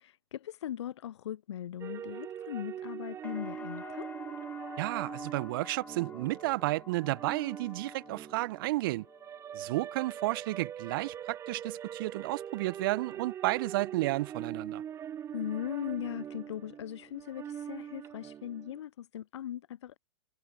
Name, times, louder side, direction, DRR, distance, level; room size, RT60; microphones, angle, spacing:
voice 1, 0.0-4.1 15.3-20.0, left 11 dB, 70° left, 0.4 m, -39 dB
Slow Strings, 1.8-18.8, right 9 dB, 20° right, 0.5 m, -43 dB
sound 1, 3.2-11.1 11.5-12.2, left 4 dB, 10° left, 0.8 m, -50 dB
voice 2, 4.8-9.1 9.5-14.8, right 19 dB, 50° right, 0.9 m, -32 dB
hypercardioid pair, 110°, 15 cm